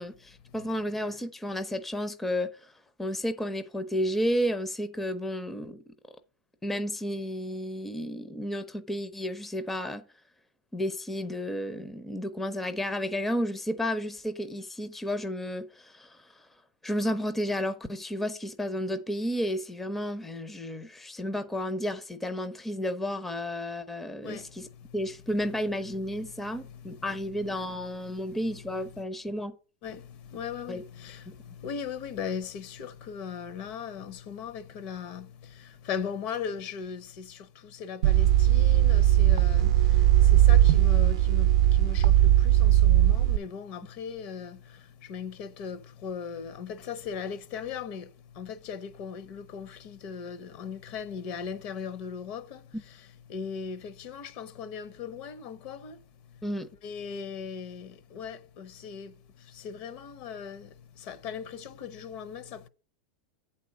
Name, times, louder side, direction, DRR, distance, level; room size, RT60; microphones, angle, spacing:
voice 1, 0.0-2.7 3.0-5.8 6.6-10.0 10.7-16.5 16.8-24.7 24.9-29.5 30.7-30.8 31.3-31.4 56.4-56.7, equal, 5° left, 0.5 m, -32 dB
voice 2, 24.2-24.9 26.2-27.0 28.1-28.3 29.8-56.4 56.8-62.7, left 7 dB, 45° left, 0.7 m, -39 dB
sound 1, 38.0-43.4, right 12 dB, 70° right, 0.5 m, -19 dB
8.2 x 4.2 x 6.1 m
supercardioid pair, 155°, 4 cm